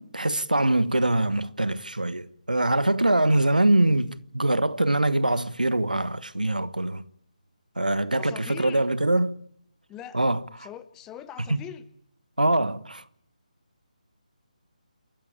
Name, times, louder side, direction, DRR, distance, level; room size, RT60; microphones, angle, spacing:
voice 1, 0.0-7.0 7.8-9.4 10.1-10.4 11.5-11.6 12.4-13.0, right 1 dB, 80° right, 1.4 m, -23 dB
voice 2, 8.1-8.9 9.9-10.2 10.6-11.8, left 9 dB, 10° left, 1.1 m, -42 dB
29.0 x 14.0 x 8.6 m
figure-of-eight pair, 150°, 4 cm